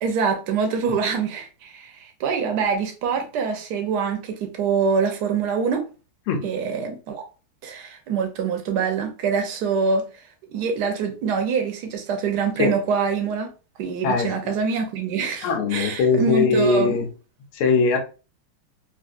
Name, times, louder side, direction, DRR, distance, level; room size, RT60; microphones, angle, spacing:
voice 1, 0.0-5.8 6.4-7.2 7.6-10.1 10.5-13.5 13.8-17.0, right 5 dB, 65° right, 1.1 m, -25 dB
voice 2, 15.4-17.1 17.5-18.0, left 5 dB, 85° left, 1.6 m, -20 dB
4.0 x 2.5 x 2.5 m
omnidirectional pair, 2.4 m